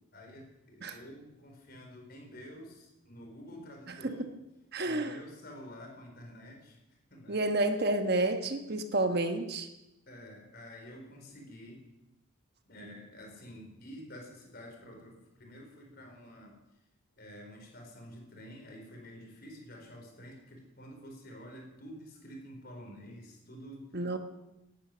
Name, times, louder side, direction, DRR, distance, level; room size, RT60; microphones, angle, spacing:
voice 1, 0.1-4.3 4.8-7.4 10.1-11.9 12.7-16.6 17.2-23.9, equal, 45° left, 1 dB, 4.4 m, -49 dB
voice 2, 3.9-4.3 4.7-5.2 7.3-9.7 23.9-24.2, right 2 dB, 45° right, 7 dB, 1.2 m, -30 dB
19.0 x 10.5 x 6.8 m, 0.92 s
head